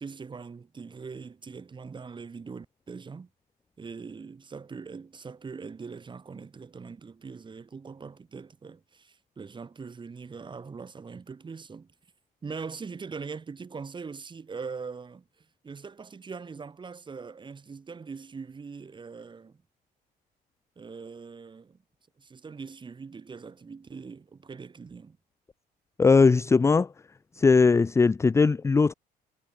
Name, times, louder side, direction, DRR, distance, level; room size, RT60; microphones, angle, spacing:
voice 1, 0.0-3.3 3.8-11.9 12.4-15.2 15.6-19.6 20.7-21.8 22.2-25.2, right 5 dB, 30° right, 3.5 m, -41 dB
voice 2, 26.0-26.9 27.4-28.9, left 4 dB, 15° left, 0.5 m, -19 dB
cardioid pair, 110°, 17 cm